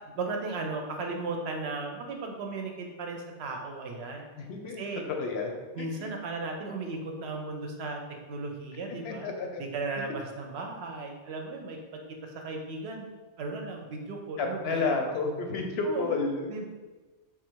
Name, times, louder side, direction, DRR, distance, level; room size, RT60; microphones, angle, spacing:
voice 1, 0.1-4.3 4.6-5.0 5.7-8.0 8.3-9.3 9.6-13.1 13.4-15.0 15.8-16.2 16.5-16.7, right 3 dB, 70° right, 2 dB, 0.8 m, -36 dB
voice 2, 4.4-4.8 5.2-5.5 5.8-6.1 9.0-9.6 14.4-16.5, left 3 dB, 70° left, 3 dB, 0.8 m, -31 dB
3.5 x 2.4 x 4.4 m, 1.3 s
omnidirectional pair, 1.2 m